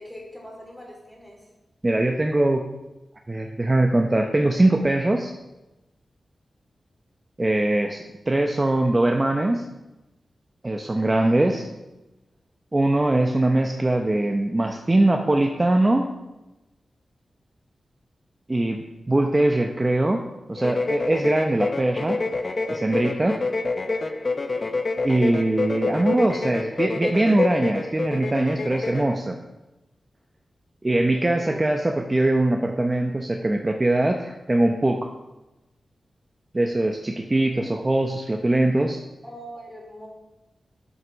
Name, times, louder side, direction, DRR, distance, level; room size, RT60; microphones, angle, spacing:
voice 1, 0.0-1.4 11.9-12.0 24.4-24.9 31.4-32.0 39.2-40.1, equal, 5° left, -2 dB, 3.9 m, -42 dB
voice 2, 1.8-2.6 3.3-5.3 7.4-9.7 10.6-11.7 12.7-16.0 18.5-20.2 20.5-22.2 22.7-23.4 24.0-24.1 25.0-29.4 30.8-35.1 36.5-39.0, right 1 dB, 25° right, 3 dB, 0.8 m, -22 dB
sound 1, 20.6-29.1, left 3 dB, 45° left, 0.8 m, -27 dB
8.1 x 7.9 x 6.2 m, 1.0 s
cardioid pair, 60°, 0 cm